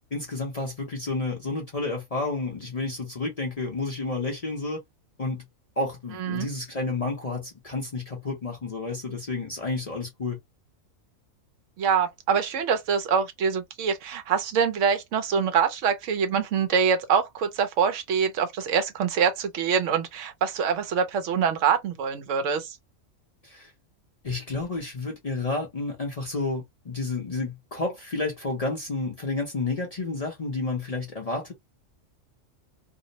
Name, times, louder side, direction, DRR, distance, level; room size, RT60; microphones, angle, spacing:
voice 1, 0.1-4.8 5.2-5.4 5.8-10.4 23.4-23.7 24.2-31.5, left 3 dB, 40° left, 0.6 m, -30 dB
voice 2, 11.8-22.8, right 6 dB, 70° right, 0.9 m, -25 dB
2.6 x 2.0 x 2.6 m
omnidirectional pair, 1.4 m